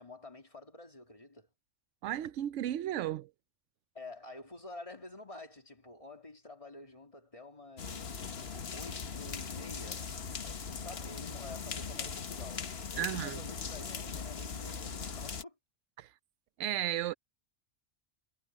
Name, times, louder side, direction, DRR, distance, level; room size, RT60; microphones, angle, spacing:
voice 1, 0.0-1.5 3.9-8.3 8.7-10.1 10.8-15.6, left 2 dB, 30° left, 2.3 m, -49 dB
voice 2, 2.0-3.3 13.0-13.4 16.0-16.1 16.6-17.1, right 12 dB, 80° right, 0.9 m, -34 dB
sound 1, 7.8-15.4, left 5 dB, 60° left, 1.4 m, -40 dB
omnidirectional pair, 1.2 m